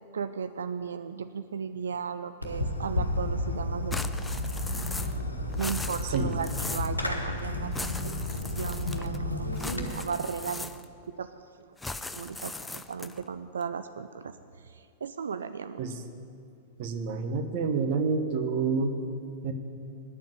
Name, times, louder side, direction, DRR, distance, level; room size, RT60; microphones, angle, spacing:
voice 1, 0.1-4.2 5.6-8.1 8.6-10.8 11.2-11.3 12.1-14.3 14.6-15.8, right 6 dB, 70° right, 11 dB, 0.3 m, -36 dB
Fireworks, 2.4-9.9, left 1 dB, 90° left, 1.1 m, -32 dB
sound 1, 3.9-5.3 5.5-7.0 7.7-9.2 9.6-11.0 11.8-13.2, left 2 dB, 10° left, 0.5 m, -39 dB
voice 2, 6.0-6.3 15.8-16.0 16.8-18.9 19.4-19.5, right 4 dB, 50° right, 7 dB, 1.1 m, -28 dB
9.9 x 7.3 x 9.2 m, 2.5 s
figure-of-eight pair, 95°, 0 cm